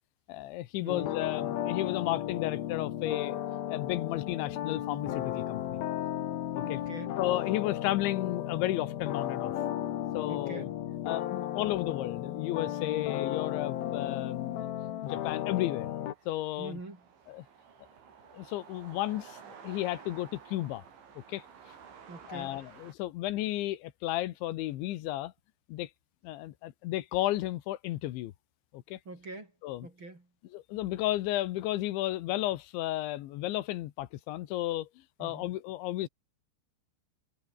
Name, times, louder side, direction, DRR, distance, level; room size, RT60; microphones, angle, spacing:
voice 1, 0.3-3.4 3.7-5.8 6.5-6.8 7.2-9.5 10.1-10.7 11.0-14.7 15.0-15.9 16.3-16.8 17.3-17.5 18.3-19.4 19.6-20.8 21.3-21.4 22.3-25.3 25.7-25.9 26.2-28.3 28.7-29.0 29.6-29.9 30.5-34.9 35.2-36.1, left 15 dB, 90° left, 3.5 m, -33 dB
voice 2, 0.8-1.1 6.6-7.1 10.3-10.7 16.6-17.0 22.1-22.6 29.1-29.5 29.8-30.2 35.2-35.5, right 2 dB, 25° right, 5.6 m, -44 dB
sound 1, 0.9-16.1, left 12 dB, 65° left, 3.1 m, -34 dB
sound 2, 12.5-22.9, right 7 dB, 80° right, 7.0 m, -54 dB
omnidirectional pair, 5.3 m